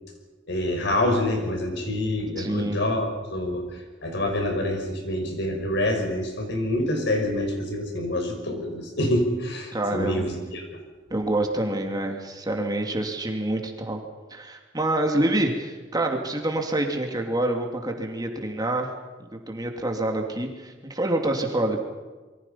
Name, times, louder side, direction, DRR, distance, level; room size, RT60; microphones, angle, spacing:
voice 1, 0.5-10.7, left 1 dB, 65° left, 4 dB, 5.9 m, -26 dB
voice 2, 2.4-2.8 9.7-10.3 11.1-14.0 14.3-18.9 19.2-21.8, right 1 dB, 20° right, 2 dB, 2.6 m, -27 dB
26.5 x 23.5 x 5.7 m, 1.3 s
head